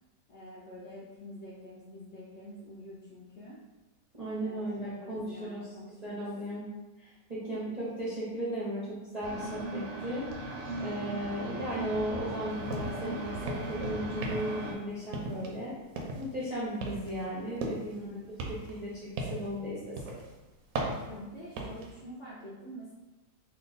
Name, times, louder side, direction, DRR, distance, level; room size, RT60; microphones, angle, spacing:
voice 1, 0.3-3.6 4.4-6.2 7.5-7.9 18.0-18.5 21.1-22.9, equal, 65° left, -7 dB, 0.7 m, -47 dB
voice 2, 4.1-5.8 6.0-6.6 7.0-10.3 10.8-15.7 16.2-18.1 18.5-20.1, equal, 50° right, -9 dB, 0.5 m, -36 dB
sound 1, 9.2-14.7, right 2 dB, 90° right, 1.3 m, -38 dB
sound 2, 12.7-13.0 13.3-13.8 14.2-14.7 15.1-15.6 16.0-16.3 16.8-18.0 18.4-19.6 20.0-20.3 20.7-21.9, right 2 dB, 70° right, 0.9 m, -36 dB
3.0 x 2.2 x 3.9 m, 1.1 s
omnidirectional pair, 1.8 m